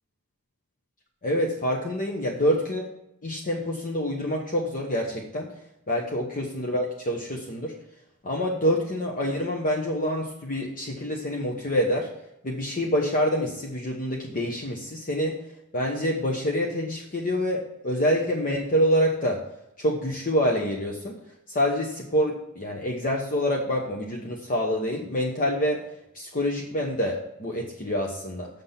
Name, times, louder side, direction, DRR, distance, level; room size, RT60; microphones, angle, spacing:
voice 1, 1.2-2.8 3.2-5.5 5.9-7.7 8.2-12.1 12.4-15.4 15.7-19.4 19.8-21.2 21.5-25.8 26.1-28.5, equal, 40° left, 0 dB, 1.0 m, -26 dB
6.9 x 6.1 x 5.7 m, 0.84 s
head